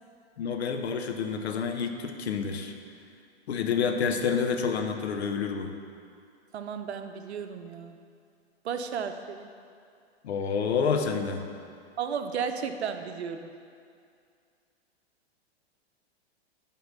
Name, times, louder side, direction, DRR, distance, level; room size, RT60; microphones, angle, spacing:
voice 1, 0.4-2.7 3.5-5.7 10.2-11.4, left 6 dB, 75° left, 5 dB, 0.9 m, -28 dB
voice 2, 6.5-8.0 8.6-9.5 12.0-13.5, right 6 dB, 75° right, 7 dB, 0.7 m, -34 dB
9.2 x 4.4 x 5.5 m, 2.3 s
hypercardioid pair, 110°, 33 cm